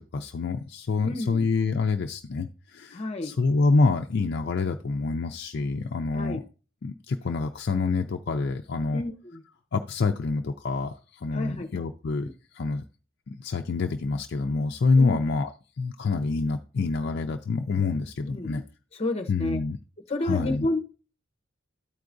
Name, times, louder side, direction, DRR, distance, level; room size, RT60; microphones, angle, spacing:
voice 1, 0.0-6.4 6.8-9.0 9.7-12.3 12.5-12.8 13.3-15.5 15.8-18.6 19.3-19.8 20.2-20.7, left 4 dB, 55° left, 0.4 m, -26 dB
voice 2, 1.0-1.5 2.9-3.4 6.1-6.4 8.9-9.4 11.3-11.9 12.2-12.3 15.0-15.2 18.3-18.7 18.9-19.6 20.1-20.8, left 2 dB, 30° left, 0.8 m, -30 dB
13.0 x 4.7 x 2.5 m
head